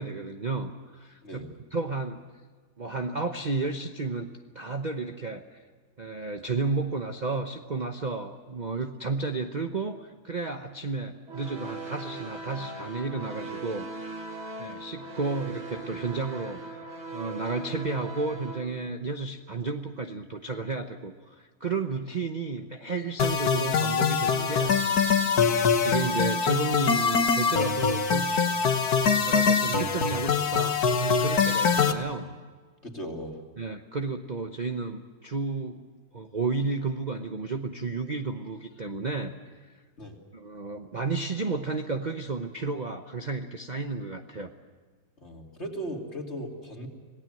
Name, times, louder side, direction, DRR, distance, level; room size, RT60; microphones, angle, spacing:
voice 1, 0.0-2.2 2.8-4.3 4.5-5.6 6.0-14.2 14.6-16.8 17.1-28.8 29.2-32.3 33.6-35.8 36.1-39.8 40.3-44.5, right 3 dB, 30° right, 5 dB, 0.9 m, -32 dB
voice 2, 1.2-1.6 32.8-33.4 40.0-40.2 45.2-46.9, equal, 40° left, 1 dB, 3.2 m, -37 dB
sound 1, 11.3-18.6, right 3 dB, 75° right, 3.2 m, -39 dB
sound 2, 23.2-31.9, left 6 dB, 60° left, 1.8 m, -24 dB
26.5 x 18.5 x 7.7 m, 1.5 s
omnidirectional pair, 1.9 m